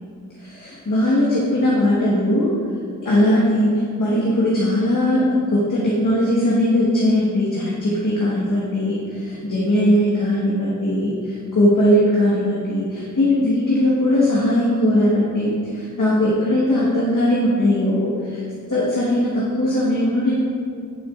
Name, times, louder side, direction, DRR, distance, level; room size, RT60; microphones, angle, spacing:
voice 1, 0.4-2.5 3.0-18.4 18.7-20.3, left 1 dB, 70° left, -7 dB, 1.4 m, -19 dB
10.0 x 6.2 x 2.4 m, 2.3 s
wide cardioid pair, 65°, 34 cm